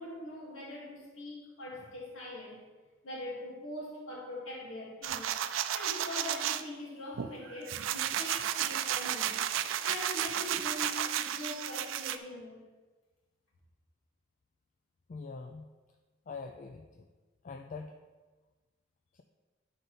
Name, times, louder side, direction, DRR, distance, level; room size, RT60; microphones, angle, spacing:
voice 1, 0.0-2.6 3.0-5.3 5.7-9.4 9.8-12.6, left 1 dB, 85° left, -4 dB, 2.2 m, -42 dB
sound 1, 5.0-6.6 7.2-12.2, right 10 dB, 90° right, 0.4 m, -33 dB
voice 2, 15.1-15.7 16.3-17.1 17.4-18.0 19.1-19.2, left 4 dB, 45° left, 5 dB, 0.4 m, -43 dB
9.4 x 5.1 x 4.1 m, 1.3 s
head